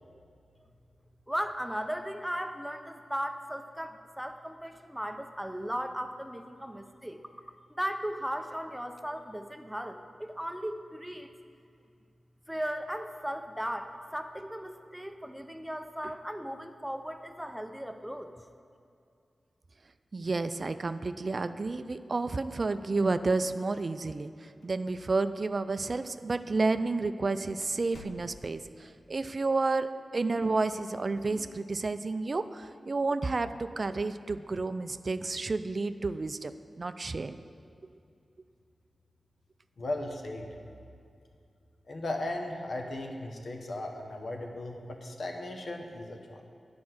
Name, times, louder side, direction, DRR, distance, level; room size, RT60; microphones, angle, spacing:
voice 1, 1.3-7.2 7.7-11.3 12.5-18.3, equal, 5° right, 7 dB, 0.6 m, -37 dB
voice 2, 20.1-36.5 36.8-37.4, right 3 dB, 50° right, 11 dB, 0.3 m, -31 dB
sound 1, 23.7-24.4 24.6-24.7 25.5-25.6 26.3-26.6 27.0-27.1 27.6-28.7, left 2 dB, 85° left, 0.6 m, -52 dB
voice 3, 39.8-40.5 41.9-46.4, left 1 dB, 65° left, 2 dB, 1.1 m, -37 dB
9.4 x 5.2 x 6.1 m, 2.5 s
cardioid pair, 60°, 0 cm